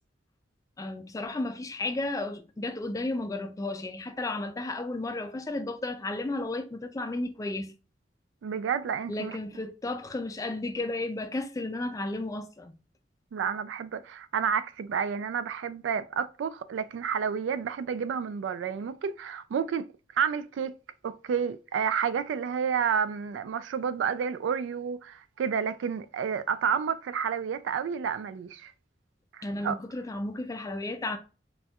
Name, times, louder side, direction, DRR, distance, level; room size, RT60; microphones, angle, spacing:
voice 1, 0.8-7.7 9.1-12.7 29.4-31.2, left 2 dB, 20° left, 0.3 m, -33 dB
voice 2, 8.4-9.4 13.3-19.9 20.1-20.8 21.0-28.7 29.3-29.8, right 7 dB, 90° right, 0.3 m, -30 dB
4.2 x 2.3 x 2.3 m
head